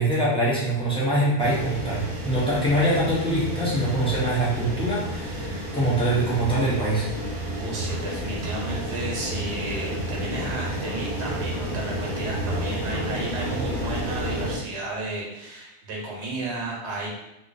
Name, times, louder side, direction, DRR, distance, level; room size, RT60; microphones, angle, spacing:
voice 1, 0.0-7.1, right 1 dB, 10° left, -8 dB, 0.3 m, -24 dB
sound 1, 1.4-14.6, right 1 dB, 55° right, 0.8 m, -30 dB
voice 2, 7.6-17.1, right 2 dB, 85° right, -2 dB, 1.0 m, -33 dB
2.4 x 2.1 x 2.4 m, 0.95 s
omnidirectional pair, 1.1 m